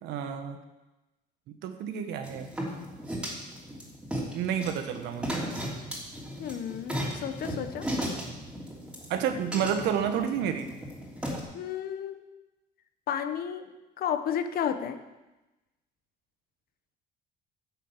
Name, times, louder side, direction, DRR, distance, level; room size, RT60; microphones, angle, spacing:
voice 1, 0.0-0.6 1.5-2.5 4.3-5.5 9.1-10.7, right 8 dB, 85° right, 7 dB, 1.3 m, -30 dB
sound 1, 2.2-11.4, equal, 5° right, 3.1 m, -36 dB
voice 2, 6.4-7.9 11.5-12.2 13.1-13.7 14.0-15.0, left 8 dB, 60° left, 10 dB, 1.0 m, -32 dB
10.5 x 7.4 x 7.3 m, 1.1 s
cardioid pair, 110°, 17 cm